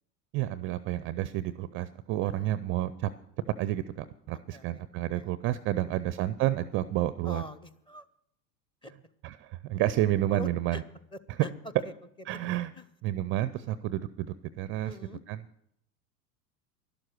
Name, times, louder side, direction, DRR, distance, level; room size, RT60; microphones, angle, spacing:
voice 1, 0.3-3.1 3.6-7.4 9.2-10.8 12.3-12.7 13.0-14.3 14.6-14.9 15.3-15.4, right 14 dB, 30° right, 15 dB, 0.4 m, -30 dB
voice 2, 2.2-2.5 4.5-4.8 5.1-5.3 5.9-6.0 7.2-8.0 8.8-8.9 10.3-10.8 11.1-11.5 11.8-11.9 12.8-12.9 14.8-15.2, left 1 dB, 10° left, 13 dB, 0.7 m, -43 dB
12.0 x 11.5 x 6.4 m, 0.71 s
figure-of-eight pair, 85°, 47 cm